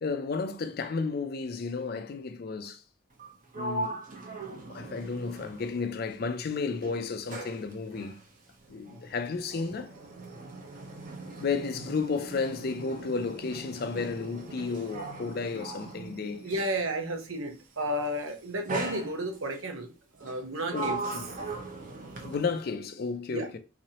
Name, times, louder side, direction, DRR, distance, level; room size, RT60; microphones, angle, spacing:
voice 1, 0.0-2.8 3.6-4.0 4.7-8.2 8.7-9.9 11.4-16.5 20.7-21.3 22.2-23.6, left 4 dB, 45° left, 0.4 m, -33 dB
Sliding door, 3.1-6.4 6.7-16.9 17.8-18.1 18.7-19.6 20.2-22.7, right 2 dB, 40° right, 0.9 m, -39 dB
voice 2, 16.4-19.9 20.2-21.0 23.3-23.5, right 1 dB, 80° right, 0.9 m, -32 dB
3.9 x 3.0 x 2.8 m
head